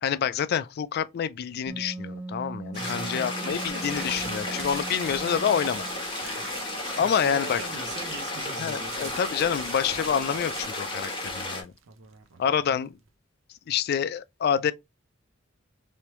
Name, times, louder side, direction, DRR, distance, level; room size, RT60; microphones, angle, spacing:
voice 1, 0.0-5.9 6.2-6.3 7.0-7.6 8.6-11.7 12.4-13.0 13.7-14.7, left 8 dB, 55° left, 0.3 m, -27 dB
Wind instrument woodwind instrument, 1.7-6.1, right 2 dB, 10° right, 0.5 m, -39 dB
sound 1, 2.7-11.6, left 2 dB, 25° left, 1.1 m, -34 dB
voice 2, 2.7-4.1 4.8-4.9 6.2-9.2, right 2 dB, 60° right, 0.8 m, -41 dB
sound 2, 3.5-13.1, right 7 dB, 85° right, 0.6 m, -43 dB
3.4 x 3.1 x 3.0 m
head